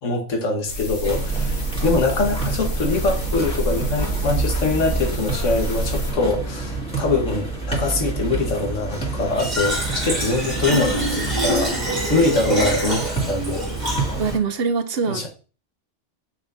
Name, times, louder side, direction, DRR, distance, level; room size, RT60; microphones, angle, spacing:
voice 1, 0.0-11.7 12.1-13.6 15.1-15.3, left 3 dB, 85° left, 1.7 m, -23 dB
sound 1, 0.7-6.1, right 2 dB, 65° left, 1.6 m, -27 dB
sound 2, 1.0-14.4, right 3 dB, 5° left, 2.0 m, -28 dB
Fill (with liquid), 9.4-14.4, right 1 dB, 35° right, 1.7 m, -25 dB
voice 2, 14.2-15.3, right 5 dB, 60° right, 1.0 m, -23 dB
7.8 x 5.7 x 2.7 m
omnidirectional pair, 1.2 m